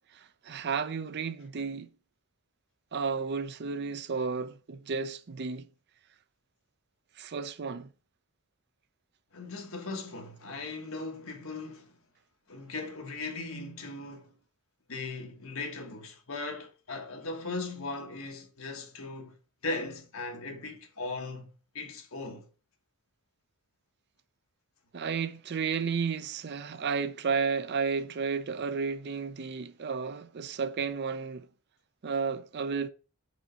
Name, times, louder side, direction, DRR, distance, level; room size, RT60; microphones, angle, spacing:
voice 1, 0.1-1.9 2.9-5.7 7.2-7.9 24.9-31.5 32.0-32.9, right 5 dB, 50° right, 0.5 m, -32 dB
voice 2, 9.3-12.0 12.5-14.3 14.9-19.3 19.6-22.5, left 3 dB, 65° left, 1.4 m, -38 dB
5.1 x 4.9 x 5.1 m
head